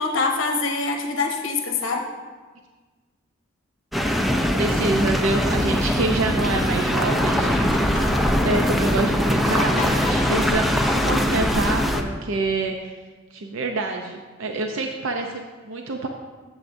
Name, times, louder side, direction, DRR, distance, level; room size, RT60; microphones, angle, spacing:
voice 1, 0.0-2.1, left 3 dB, 65° left, 3 dB, 0.9 m, -24 dB
sound 1, 3.9-12.0, equal, ahead, 0.5 m, -22 dB
voice 2, 4.5-7.6 8.2-12.9 13.3-16.1, right 3 dB, 70° right, 3 dB, 0.6 m, -27 dB
sound 2, 5.4-10.8, left 1 dB, 40° left, 2.3 m, -33 dB
13.0 x 7.2 x 2.6 m, 1.4 s
head